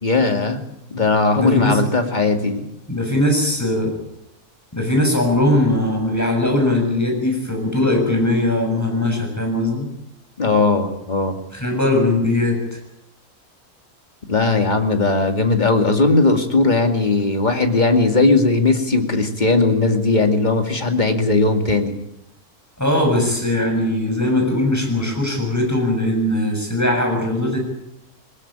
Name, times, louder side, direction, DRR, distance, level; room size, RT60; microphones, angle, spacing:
voice 1, 0.0-0.6 0.9-2.6 10.4-11.4 14.3-21.9, left 3 dB, 30° left, 5 dB, 2.4 m, -18 dB
voice 2, 1.4-1.8 2.9-4.0 4.7-9.9 11.5-12.8 22.8-27.6, left 1 dB, 10° left, 2 dB, 7.1 m, -20 dB
21.5 x 19.5 x 8.8 m, 0.84 s
omnidirectional pair, 1.6 m